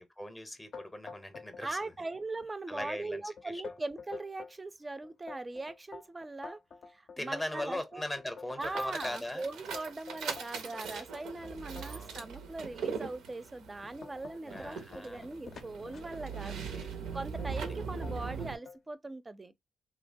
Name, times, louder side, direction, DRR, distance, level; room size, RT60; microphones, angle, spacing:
voice 1, 0.0-1.9 2.7-3.6 7.2-9.5 11.8-12.2 14.4-15.3 16.4-16.9 17.5-17.6, left 1 dB, 20° left, 0.6 m, -40 dB
sound 1, 0.7-1.7 1.9-2.5 2.8-2.9 3.4-4.6 5.0-9.4 9.7-12.3 12.9-13.0 13.5-16.6 17.4-17.8 18.0-18.8, left 5 dB, 65° left, 0.5 m, -48 dB
voice 2, 1.6-6.6 6.9-8.0 8.6-16.6 17.1-19.5, right 2 dB, 30° right, 0.4 m, -40 dB
sound 2, 8.6-18.6, right 6 dB, 90° right, 0.5 m, -41 dB
2.7 x 2.2 x 2.5 m
supercardioid pair, 55°, 0 cm